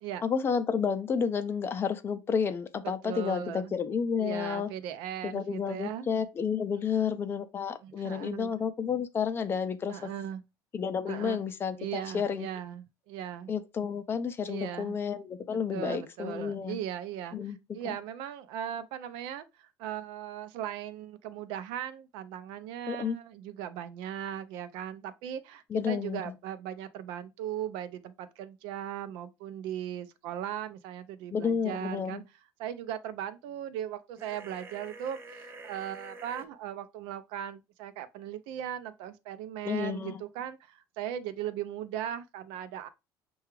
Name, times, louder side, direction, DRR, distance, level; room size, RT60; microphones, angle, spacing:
voice 1, 0.2-4.7 5.2-10.0 10.7-12.5 13.5-16.8 17.3-17.6 17.8-18.0 22.9-23.2 25.7-26.2 31.3-32.2 39.6-40.2, left 6 dB, 30° left, 0.4 m, -31 dB
voice 2, 2.8-3.8 4.2-6.1 6.9-7.1 7.8-8.5 9.9-10.4 11.1-11.4 11.8-13.5 14.5-15.0 15.7-32.2 32.6-35.2 35.6-42.9, right 10 dB, 85° right, 0.5 m, -38 dB
sound 1, 34.2-36.5, right 2 dB, 30° right, 0.5 m, -47 dB
5.7 x 2.3 x 3.0 m
cardioid pair, 140°, 8 cm